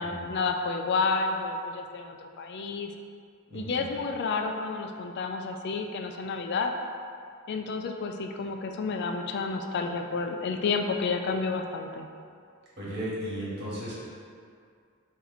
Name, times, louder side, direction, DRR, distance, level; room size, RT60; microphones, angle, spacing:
voice 1, 0.0-2.9 3.5-6.7 7.5-12.1, left 4 dB, 55° left, 4 dB, 0.3 m, -30 dB
voice 2, 3.5-3.9 12.8-13.9, equal, 55° right, -8 dB, 1.4 m, -35 dB
4.3 x 2.7 x 4.0 m, 2.2 s
head